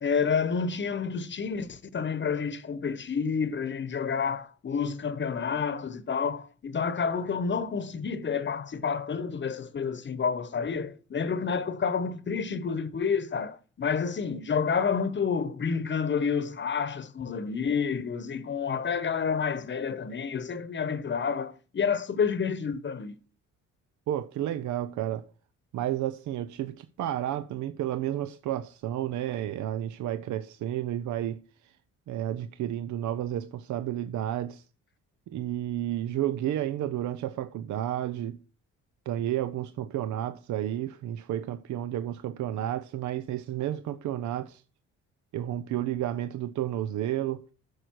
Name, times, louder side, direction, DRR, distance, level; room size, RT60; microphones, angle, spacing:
voice 1, 0.0-23.2, left 6 dB, 40° left, 1.0 m, -29 dB
voice 2, 24.1-25.3 25.7-31.8 32.1-34.6 35.3-38.4 39.1-44.6 45.3-47.5, right 12 dB, 70° right, 0.6 m, -31 dB
10.5 x 6.6 x 4.6 m
cardioid pair, 90°, 30 cm